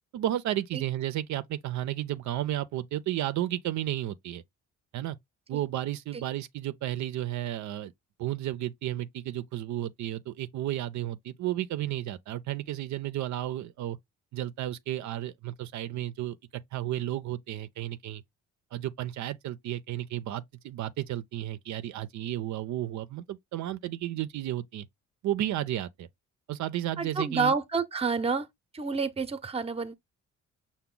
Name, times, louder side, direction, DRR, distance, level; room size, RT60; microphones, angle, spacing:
voice 1, 0.1-4.4 4.9-5.2 5.5-7.9 8.2-14.0 14.3-16.4 16.7-18.2 18.7-24.9 25.2-26.1 26.5-27.5, right 13 dB, 70° right, 0.5 m, -33 dB
voice 2, 27.0-28.5 28.7-29.9, right 4 dB, 20° right, 0.7 m, -29 dB
5.7 x 2.2 x 3.7 m
cardioid pair, 90°, 30 cm